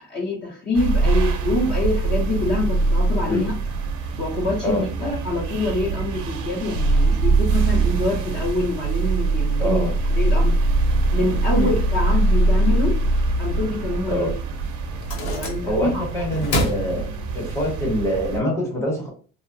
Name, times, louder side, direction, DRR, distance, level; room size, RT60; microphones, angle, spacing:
voice 1, 0.1-3.5 4.2-9.8 10.1-10.6 11.1-12.9 13.4-14.3 15.3-16.0, left 2 dB, 35° left, -3 dB, 0.7 m, -25 dB
sound 1, 0.7-18.4, right 3 dB, 90° right, 0.6 m, -22 dB
voice 2, 9.6-9.9 11.5-11.7 14.1-14.3 15.7-17.0 17.3-19.1, equal, 10° left, -2 dB, 0.9 m, -24 dB
sound 2, 14.9-16.0 16.3-17.6, left 1 dB, 85° left, 0.9 m, -28 dB
2.8 x 2.1 x 2.6 m, 0.39 s
cardioid pair, 165°, 29 cm